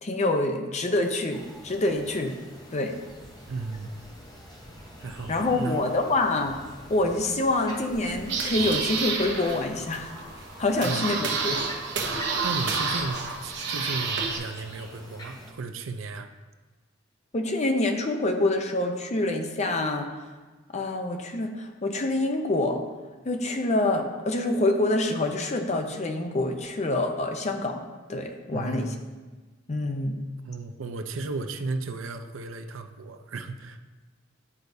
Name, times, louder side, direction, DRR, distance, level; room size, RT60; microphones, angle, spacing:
voice 1, 0.0-2.4 2.7-2.9 5.3-6.6 6.9-10.1 10.6-11.6 12.1-12.3 17.3-20.1 20.7-22.8 23.3-28.9 29.7-30.2, left 2 dB, 35° left, 4 dB, 0.6 m, -26 dB
sound 1, 1.3-15.5, equal, 20° left, 1.0 m, -46 dB
voice 2, 3.5-4.0 5.0-5.8 10.8-11.1 12.4-16.3 28.5-29.0 30.4-33.8, right 3 dB, 85° right, 7 dB, 0.5 m, -35 dB
sound 2, 7.9-14.4, right 4 dB, 60° right, 0.9 m, -30 dB
9.7 x 4.6 x 2.6 m, 1.3 s
head